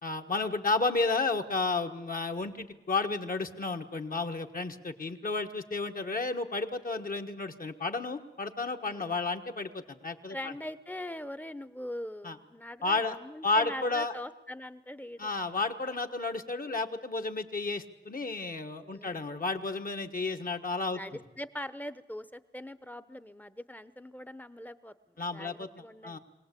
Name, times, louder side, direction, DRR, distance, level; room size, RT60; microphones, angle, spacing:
voice 1, 0.0-10.5 12.2-12.4 12.8-13.2 13.4-14.1 15.2-21.0 25.2-26.2, left 3 dB, 50° left, 5 dB, 1.4 m, -32 dB
voice 2, 8.9-9.2 10.3-15.3 18.9-19.2 20.9-24.9 25.3-26.2, left 1 dB, 10° left, 13 dB, 0.8 m, -42 dB
23.5 x 18.0 x 8.4 m, 1.1 s
wide cardioid pair, 105°, 18 cm